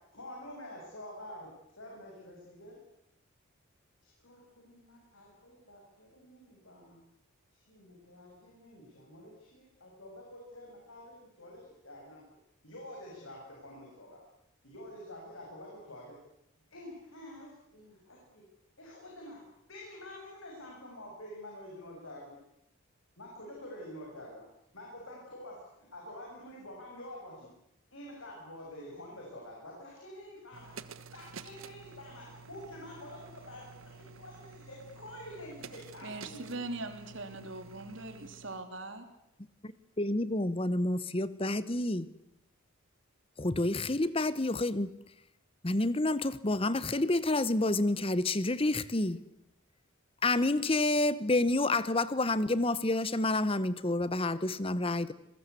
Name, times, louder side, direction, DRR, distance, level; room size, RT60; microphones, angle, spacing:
voice 1, 0.1-1.5 1.8-2.8 4.0-7.0 7.5-12.2 12.6-14.2 14.6-16.2 16.7-18.4 18.8-19.4 19.7-22.4 23.2-24.4 24.7-27.5 27.9-30.7 31.1-36.6, left 1 dB, 75° left, -2 dB, 7.3 m, -48 dB
sound 1, 30.5-38.6, right 5 dB, 75° right, 1.2 m, -50 dB
voice 2, 36.0-39.1, right 2 dB, 60° right, 7 dB, 3.3 m, -41 dB
voice 3, 40.0-42.1 43.4-45.0 45.6-49.2 50.2-55.1, left 2 dB, 25° left, 16 dB, 1.0 m, -29 dB
26.5 x 21.5 x 8.3 m, 0.83 s
head